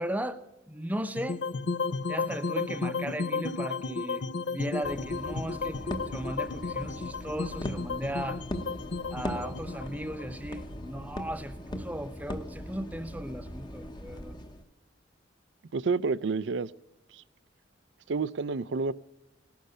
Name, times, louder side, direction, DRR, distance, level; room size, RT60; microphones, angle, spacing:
voice 1, 0.0-1.4 2.1-4.2 4.5-5.8 6.1-8.4 9.1-14.4, right 1 dB, 10° right, 0.7 m, -36 dB
sound 1, 1.2-11.4, left 4 dB, 65° left, 0.6 m, -34 dB
sound 2, 4.8-14.6, equal, 25° left, 0.9 m, -40 dB
voice 2, 15.7-16.7 18.1-18.9, right 4 dB, 70° right, 0.5 m, -29 dB
18.0 x 11.5 x 5.6 m
head